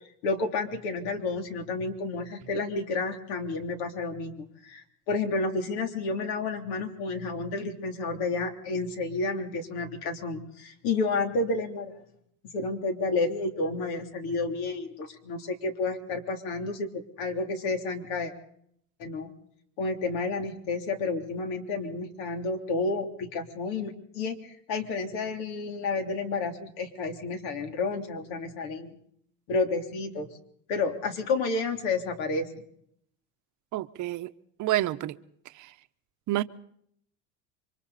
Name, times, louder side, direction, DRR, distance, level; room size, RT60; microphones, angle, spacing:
voice 1, 0.2-12.0 12.5-18.3 19.0-19.3 19.8-29.0 29.5-30.3 30.7-32.6, left 3 dB, 70° left, 3.4 m, -30 dB
voice 2, 33.7-34.3 34.6-35.2 35.6-35.7 36.3-36.4, right 16 dB, 50° right, 1.0 m, -28 dB
28.0 x 24.5 x 4.2 m
supercardioid pair, 125°, 40 cm